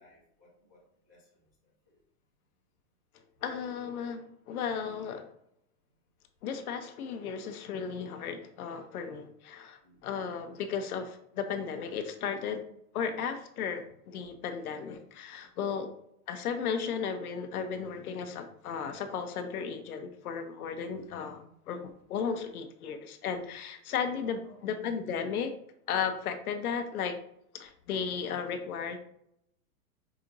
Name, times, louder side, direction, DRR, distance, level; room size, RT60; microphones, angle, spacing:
voice 1, 0.0-2.0 9.8-10.4 21.0-21.2 24.4-24.6, left 1 dB, 15° right, -12 dB, 0.3 m, -62 dB
voice 2, 3.4-5.3 6.4-12.6 12.9-15.9 16.3-25.5 25.9-27.2 27.5-29.0, left 6 dB, 70° left, 8 dB, 0.7 m, -35 dB
5.0 x 2.8 x 2.5 m, 0.75 s
hypercardioid pair, 165°, 45 cm